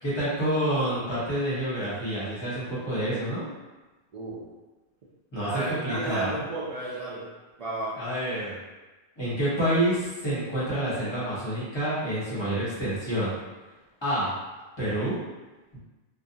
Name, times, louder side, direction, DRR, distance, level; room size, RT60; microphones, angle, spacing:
voice 1, 0.0-3.4 5.3-6.4 8.0-8.6 9.2-13.4 14.0-14.3 14.8-15.2 15.7-15.8, right 1 dB, 25° left, -10 dB, 0.8 m, -28 dB
voice 2, 4.1-4.4 5.5-7.3 7.6-8.0, right 2 dB, 55° right, -7 dB, 0.4 m, -32 dB
2.4 x 2.1 x 2.6 m, 1.2 s
omnidirectional pair, 1.1 m